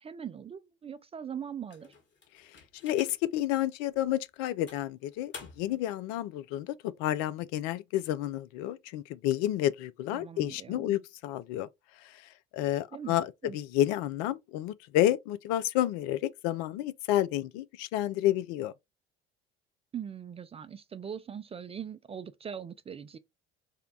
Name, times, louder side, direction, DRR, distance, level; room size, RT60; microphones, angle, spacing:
voice 1, 0.0-1.9 10.1-11.0 12.9-13.6 19.9-23.2, right 8 dB, 20° right, 0.3 m, -41 dB
sound 1, 1.7-3.4 4.0-4.1 4.7-5.9, left 4 dB, 40° left, 1.3 m, -50 dB
voice 2, 2.8-11.7 12.0-18.7, left 13 dB, 65° left, 0.4 m, -30 dB
3.5 x 2.2 x 3.8 m
hypercardioid pair, 60°, 30 cm